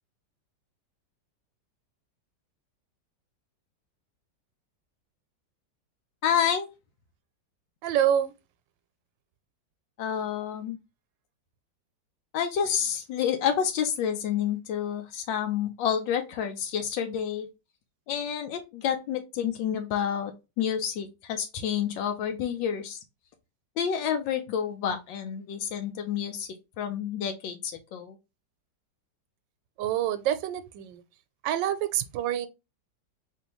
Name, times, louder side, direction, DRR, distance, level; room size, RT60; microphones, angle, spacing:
voice 1, 6.2-6.7 10.0-10.8 12.3-17.5 18.1-23.0 23.8-26.5 26.8-28.2, left 8 dB, 90° left, 1.4 m, -29 dB
voice 2, 7.8-8.3 29.8-31.0 31.4-32.5, right 10 dB, 85° right, 1.3 m, -27 dB
4.4 x 3.2 x 2.9 m
omnidirectional pair, 2.0 m